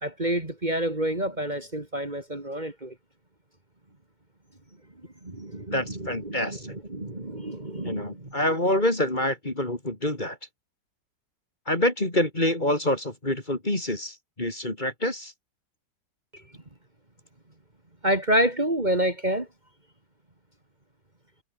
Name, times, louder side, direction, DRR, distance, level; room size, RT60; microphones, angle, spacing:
voice 1, 0.0-2.9 5.2-8.3 18.0-19.5, right 1 dB, 25° right, 3.1 m, -28 dB
voice 2, 5.7-6.7 7.8-10.4 11.7-15.3, left 1 dB, 25° left, 3.6 m, -26 dB
omnidirectional pair, 1.9 m